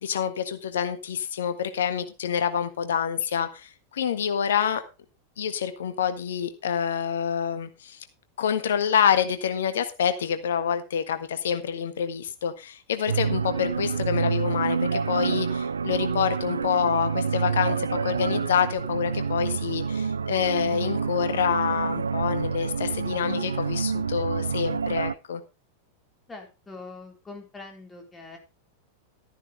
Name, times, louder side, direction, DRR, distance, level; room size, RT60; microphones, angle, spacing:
voice 1, 0.0-4.8 5.4-8.0 8.4-25.4, left 8 dB, 60° left, 1.6 m, -27 dB
sound 1, 13.1-25.1, right 5 dB, 75° right, 0.5 m, -28 dB
voice 2, 26.3-28.4, left 3 dB, 15° left, 4.0 m, -43 dB
13.0 x 11.0 x 3.2 m
figure-of-eight pair, 90°, 0 cm